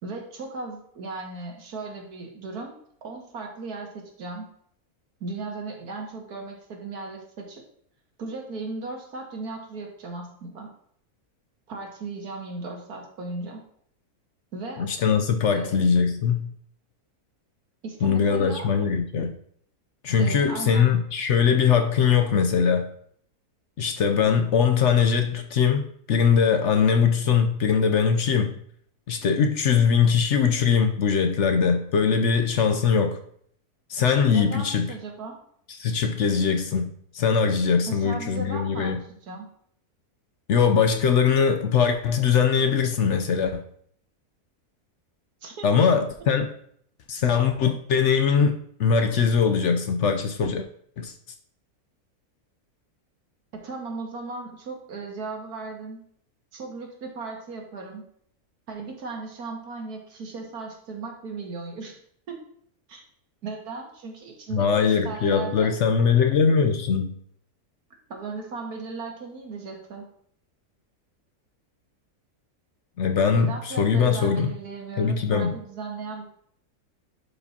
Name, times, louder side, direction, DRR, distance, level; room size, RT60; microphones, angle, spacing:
voice 1, 0.0-2.7 3.0-4.5 5.2-7.6 8.2-10.7 11.7-13.6 14.5-14.9 15.5-15.8 17.8-18.7 20.2-21.0 34.3-35.4 37.9-39.5 45.4-45.7 53.5-56.0 56.5-58.0 58.7-62.0 62.3-62.4 62.9-63.0 63.4-65.7 68.1-70.1 73.4-76.2, right 3 dB, 85° right, 2.0 m, -36 dB
voice 2, 14.8-16.5 18.0-19.3 20.0-22.9 23.8-28.6 29.1-33.2 33.9-34.9 35.8-39.0 40.5-43.6 45.6-46.5 47.1-50.7 51.0-51.1 64.5-67.2 73.0-74.5 75.0-75.5, left 6 dB, 60° left, 0.8 m, -21 dB
11.5 x 5.0 x 2.8 m
omnidirectional pair, 1.6 m